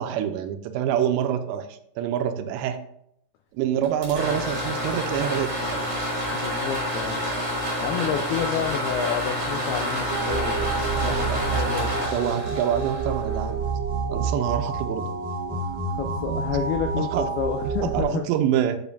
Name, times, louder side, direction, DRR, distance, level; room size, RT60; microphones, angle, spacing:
voice 1, 0.0-2.8 3.5-5.9 7.9-8.2 11.1-13.8 14.1-15.1 17.0-17.3 17.6-18.8, right 10 dB, 90° right, 8 dB, 2.9 m, -27 dB
sound 1, 3.8-13.6, equal, 35° right, 3.9 m, -28 dB
voice 2, 6.3-7.3 7.8-12.1 15.5-18.3, left 9 dB, 90° left, 5 dB, 2.2 m, -30 dB
sound 2, 10.1-18.0, right 4 dB, 75° right, 2.1 m, -28 dB
7.9 x 7.0 x 2.6 m, 0.72 s
omnidirectional pair, 5.0 m